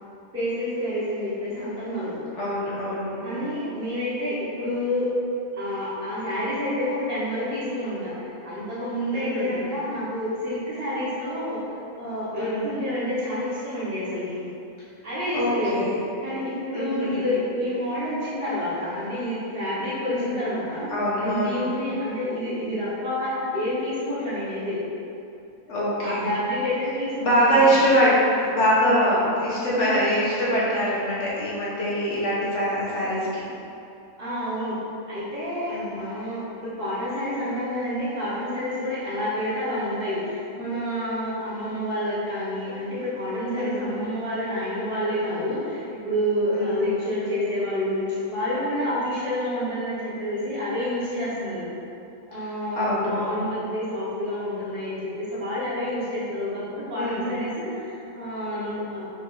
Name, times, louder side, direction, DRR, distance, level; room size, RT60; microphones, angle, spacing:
voice 1, 0.3-2.1 3.2-5.1 5.5-14.5 15.0-15.9 16.2-20.9 21.2-24.8 26.0-27.8 34.2-34.8 35.1-51.7 52.3-59.0, left 1 dB, 45° right, -10 dB, 1.2 m, -28 dB
voice 2, 2.3-3.5 9.1-9.6 12.3-12.7 15.3-16.0 16.7-17.3 20.1-20.4 20.9-21.6 25.7-26.3 27.2-33.4 35.7-36.1 43.6-43.9 46.5-46.8 52.3-52.5 52.7-53.5 56.9-57.4, equal, 60° left, -8 dB, 1.2 m, -24 dB
5.1 x 2.6 x 3.7 m, 2.7 s
omnidirectional pair, 1.5 m